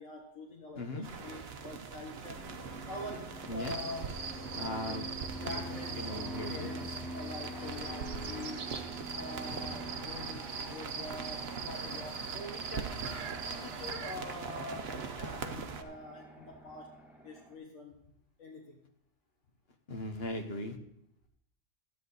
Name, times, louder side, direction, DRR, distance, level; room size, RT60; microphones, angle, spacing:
voice 1, 0.0-2.4 2.8-4.1 4.5-5.1 5.4-8.8 9.1-13.1 13.4-17.0 17.2-18.0 18.4-18.8, left 2 dB, 70° left, -2 dB, 1.7 m, -45 dB
voice 2, 0.7-1.1 3.5-3.7 4.5-5.1 5.5-6.7 19.9-20.8, left 1 dB, 50° left, 5 dB, 1.4 m, -38 dB
sound 1, 1.0-15.8, right 5 dB, 55° right, 1.1 m, -43 dB
Fixed-wing aircraft airplane, 2.3-17.5, right 1 dB, ahead, 1.6 m, -46 dB
sound 2, 3.6-14.2, right 5 dB, 85° right, 1.2 m, -43 dB
13.0 x 9.2 x 4.1 m, 0.75 s
omnidirectional pair, 1.3 m